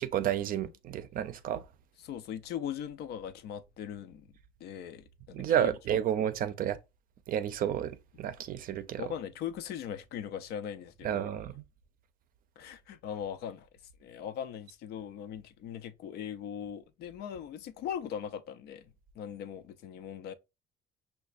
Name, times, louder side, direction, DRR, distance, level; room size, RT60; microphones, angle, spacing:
voice 1, 0.0-1.6 5.3-6.8 7.3-9.1 11.0-11.6, right 10 dB, 55° right, 0.5 m, -31 dB
voice 2, 2.0-4.3 4.6-5.7 9.0-11.4 12.6-13.7 14.0-20.3, left 9 dB, 75° left, 0.5 m, -40 dB
5.7 x 2.3 x 2.4 m
cardioid pair, 110°, 17 cm